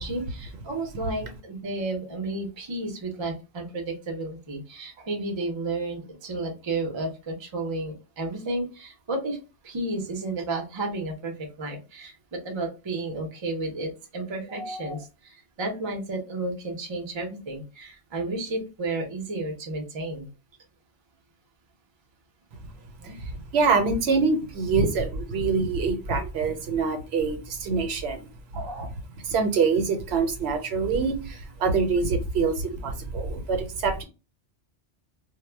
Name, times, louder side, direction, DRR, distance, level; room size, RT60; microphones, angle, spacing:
voice 1, 0.0-9.4 9.6-20.3 23.0-23.2 28.5-28.9, right 2 dB, 35° right, 2 dB, 0.5 m, -32 dB
voice 2, 23.0-28.3 28.8-28.9 29.2-34.0, right 4 dB, 70° right, 5 dB, 0.8 m, -25 dB
2.1 x 2.0 x 3.2 m, 0.30 s
omnidirectional pair, 1.1 m